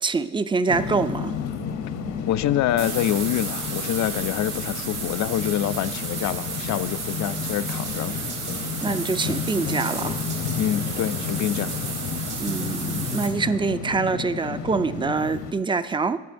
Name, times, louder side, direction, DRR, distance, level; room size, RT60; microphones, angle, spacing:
voice 1, 0.0-1.3 8.8-10.2 12.4-16.2, right 4 dB, 15° right, 13 dB, 0.4 m, -25 dB
sound 1, 0.7-15.5, left 6 dB, 85° left, 0.9 m, -32 dB
voice 2, 2.3-8.2 10.6-11.7, left 12 dB, 70° left, 14 dB, 0.5 m, -26 dB
sound 2, 2.8-13.3, right 5 dB, 80° right, 2.6 m, -33 dB
20.0 x 7.6 x 2.6 m, 1.2 s
cardioid pair, 90°, 30 cm